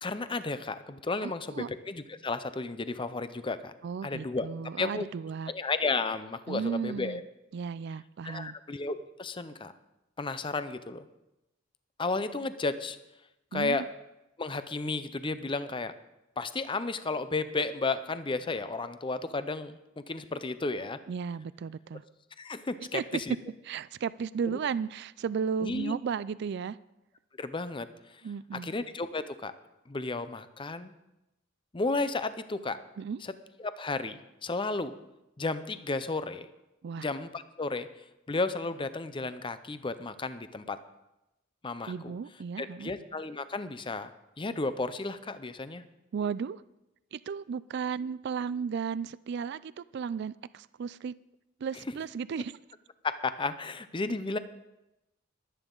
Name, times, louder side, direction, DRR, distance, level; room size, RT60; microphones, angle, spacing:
voice 1, 0.0-3.7 4.0-4.5 4.8-5.1 5.5-7.2 8.2-9.7 10.2-11.1 12.0-13.0 13.5-13.9 14.4-15.9 16.4-19.8 20.1-21.0 22.4-23.3 24.5-24.6 25.6-25.9 27.4-28.2 28.5-29.5 29.9-30.9 31.7-32.8 33.2-33.3 33.6-34.9 35.4-36.5 37.0-37.9 38.3-40.8 41.6-42.1 42.6-44.1 44.4-45.8 53.0-54.4, left 3 dB, 25° left, 12 dB, 0.6 m, -33 dB
voice 2, 1.2-1.7 3.8-5.5 6.5-7.2 7.5-8.6 13.5-13.9 21.1-22.0 22.9-23.0 23.7-26.8 28.2-28.7 33.0-33.2 36.8-37.1 41.9-42.9 46.1-46.6 47.1-51.1 51.6-52.5, right 6 dB, 55° right, 17 dB, 0.3 m, -34 dB
22.5 x 9.1 x 3.9 m, 0.93 s
head